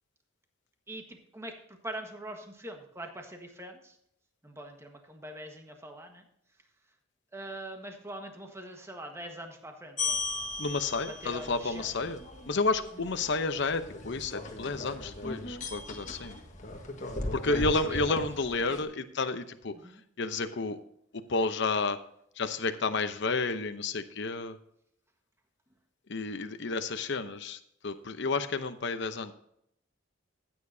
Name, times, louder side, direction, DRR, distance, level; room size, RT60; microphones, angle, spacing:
voice 1, 0.9-4.0 4.4-6.2 7.3-10.2 11.1-11.9 12.9-13.3 17.5-18.2 19.7-20.0, right 1 dB, 15° right, 4 dB, 1.5 m, -43 dB
sound 1, 10.0-18.8, left 2 dB, 40° left, 1.6 m, -38 dB
voice 2, 10.6-12.2 12.5-16.4 17.3-19.7 20.2-20.8 21.1-22.0 22.4-24.6 26.1-29.3, left 3 dB, 60° left, 9 dB, 0.8 m, -31 dB
14.5 x 9.1 x 2.7 m, 0.72 s
head